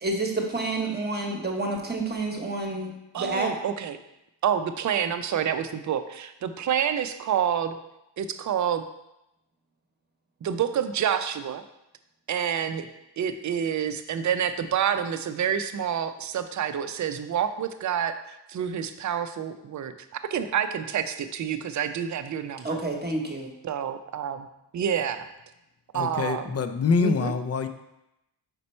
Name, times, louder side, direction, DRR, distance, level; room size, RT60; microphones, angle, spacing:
voice 1, 0.0-3.5 22.6-23.5, right 2 dB, 25° right, 1 dB, 1.0 m, -29 dB
voice 2, 3.1-4.0 4.4-7.8 8.2-8.8 10.4-11.6 12.3-12.9 13.2-18.1 18.5-19.9 20.3-22.8 23.6-24.5 24.7-25.3 25.9-26.4 27.0-27.1, right 8 dB, 45° right, 9 dB, 0.5 m, -28 dB
voice 3, 25.9-27.7, left 5 dB, 35° left, 9 dB, 0.4 m, -25 dB
5.3 x 4.2 x 4.3 m, 0.88 s
cardioid pair, 115°, 42 cm